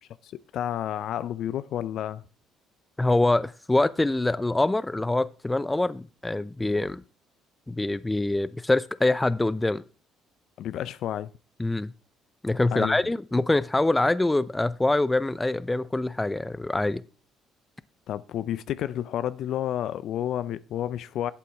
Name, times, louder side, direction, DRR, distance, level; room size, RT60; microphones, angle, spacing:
voice 1, 0.2-2.2 10.6-11.3 12.7-13.0 18.1-21.3, left 11 dB, 65° left, 0.5 m, -30 dB
voice 2, 3.0-7.0 7.7-9.8 11.6-11.9 12.4-17.0, left 2 dB, 15° left, 0.6 m, -24 dB
11.5 x 8.4 x 3.5 m
hypercardioid pair, 55°, 0 cm